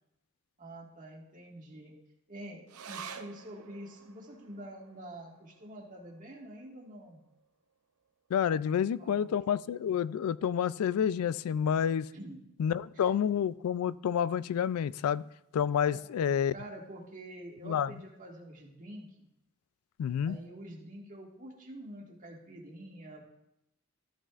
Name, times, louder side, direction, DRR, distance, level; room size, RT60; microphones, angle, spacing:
voice 1, 0.6-2.0 2.3-7.2 9.0-9.4 12.1-12.4 13.0-13.1 15.9-16.0 16.5-19.3 20.3-23.2, right 1 dB, 40° right, -1 dB, 1.8 m, -47 dB
sound 1, 2.7-9.5 9.8-9.9 10.2-10.9 11.4-11.5, right 7 dB, 80° right, 0.6 m, -51 dB
voice 2, 8.3-12.1 12.6-15.2 15.5-16.5 17.6-17.9 20.0-20.4, left 8 dB, 85° left, 18 dB, 0.3 m, -29 dB
13.5 x 8.7 x 2.5 m, 0.83 s
head